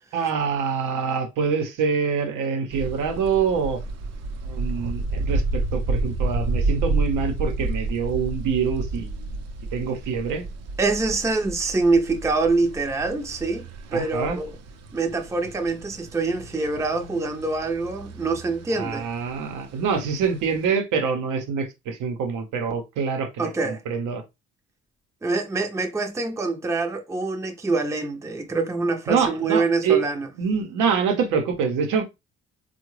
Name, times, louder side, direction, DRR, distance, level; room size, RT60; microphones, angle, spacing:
voice 1, 0.1-3.8 4.4-9.4 9.7-10.4 13.9-14.4 18.7-24.2 29.1-30.0 30.4-32.0, right 6 dB, 90° right, 0.8 m, -25 dB
sound 1, 2.7-20.7, right 2 dB, 55° right, 0.6 m, -31 dB
voice 2, 10.8-13.7 13.9-14.5 14.9-19.1 23.4-23.8 25.2-30.3, right 3 dB, 10° right, 0.5 m, -25 dB
3.6 x 2.2 x 3.0 m
cardioid pair, 90°, 30 cm